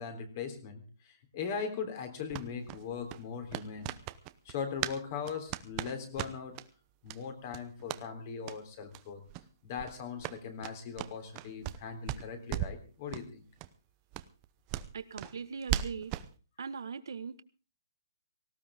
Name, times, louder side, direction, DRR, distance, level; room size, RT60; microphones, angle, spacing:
voice 1, 0.0-3.9 4.5-6.6 7.0-9.2 9.6-13.4, left 6 dB, 35° left, 8 dB, 3.5 m, -39 dB
sound 1, 2.3-5.0 5.2-6.7 7.1-7.2 7.5-8.0 8.4-8.6 8.9-9.0 9.3-9.5 9.8-11.8 12.1-12.8 13.1-13.3 13.6-13.7 14.1-16.3, right 14 dB, 25° right, 0.8 m, -38 dB
voice 2, 14.9-16.1 16.6-17.4, right 5 dB, 80° right, 12 dB, 1.5 m, -40 dB
18.5 x 17.0 x 3.7 m, 0.35 s
hypercardioid pair, 165°, 2 cm